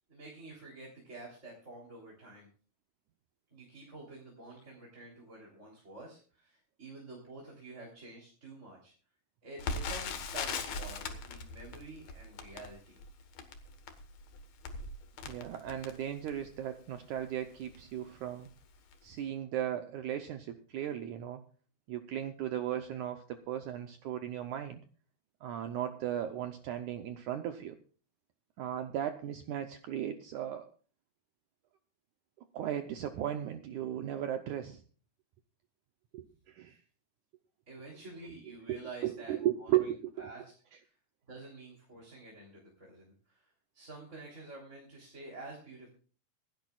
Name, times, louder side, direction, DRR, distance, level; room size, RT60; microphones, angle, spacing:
voice 1, 0.1-2.5 3.5-8.9 9.4-13.0 37.7-39.9 40.2-40.5 40.8-40.9 41.3-45.9, right 2 dB, 20° right, -2 dB, 3.4 m, -49 dB
Crackle, 9.6-16.6 17.2-17.3 17.6-17.8 18.4-18.7 18.9-19.0, left 4 dB, 60° left, 2.3 m, -40 dB
voice 2, 15.3-18.5 19.0-21.4 21.9-24.8 25.4-27.8 28.6-30.7 32.5-34.8 36.1-36.8 38.7-40.1, right 11 dB, 75° right, 7 dB, 1.8 m, -36 dB
25.5 x 10.5 x 2.4 m, 0.39 s
omnidirectional pair, 4.3 m